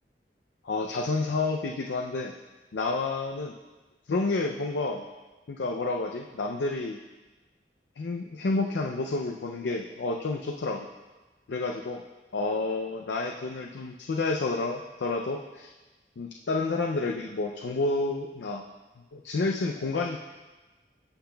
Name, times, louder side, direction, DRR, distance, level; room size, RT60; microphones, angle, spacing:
voice 1, 0.6-2.3 2.7-3.5 4.1-5.0 5.5-7.0 8.0-10.9 11.5-12.0 12.3-15.7 16.2-18.7 19.1-20.2, left 3 dB, 85° left, 2 dB, 0.5 m, -30 dB
15.0 x 5.7 x 2.3 m, 1.2 s
head